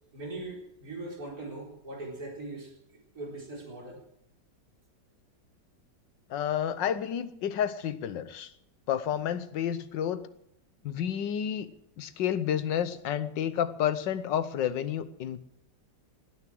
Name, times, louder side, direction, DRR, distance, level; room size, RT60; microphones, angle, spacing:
voice 1, 0.1-2.7 3.1-4.0, right 2 dB, 55° right, -1 dB, 4.5 m, -40 dB
voice 2, 6.3-8.5 8.9-10.3 10.8-11.7 12.0-15.4, left 9 dB, 85° left, 14 dB, 1.6 m, -30 dB
18.5 x 9.8 x 7.7 m, 0.75 s
omnidirectional pair, 1.9 m